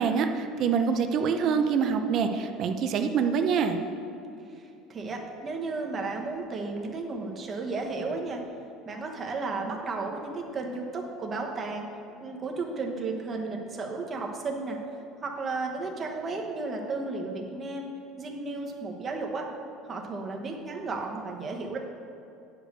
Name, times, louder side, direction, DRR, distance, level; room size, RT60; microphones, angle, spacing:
voice 1, 0.0-3.8, right 6 dB, 45° right, 7 dB, 0.6 m, -25 dB
voice 2, 4.5-8.4 8.9-11.9 12.2-14.8 15.2-17.9 18.2-19.5 19.8-21.8, right 3 dB, 25° right, 1 dB, 1.1 m, -33 dB
9.6 x 5.1 x 6.6 m, 2.7 s
cardioid pair, 150°, 0 cm